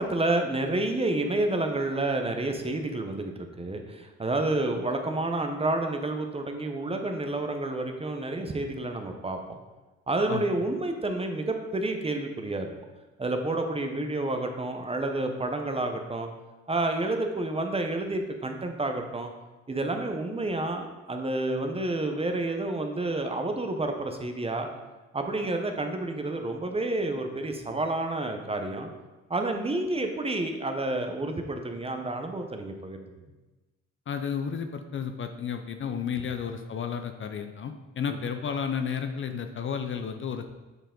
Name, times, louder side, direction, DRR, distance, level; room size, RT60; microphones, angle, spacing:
voice 1, 0.0-9.6 10.1-12.7 13.2-16.3 16.7-19.3 19.7-24.7 25.1-28.9 29.3-33.1 38.1-38.2, right 2 dB, 20° right, 4 dB, 0.8 m, -29 dB
voice 2, 34.1-40.5, left 7 dB, 40° left, 7 dB, 0.5 m, -32 dB
7.9 x 4.5 x 3.7 m, 1.2 s
cardioid pair, 90°, 30 cm